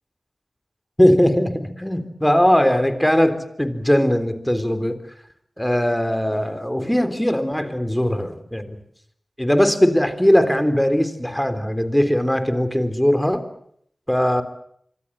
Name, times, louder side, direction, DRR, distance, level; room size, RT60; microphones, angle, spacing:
voice 1, 1.0-5.0 5.6-8.8 9.4-13.4 14.1-14.4, equal, 5° left, 11 dB, 3.5 m, -19 dB
26.0 x 25.0 x 7.5 m, 0.67 s
wide cardioid pair, 65°, 0 cm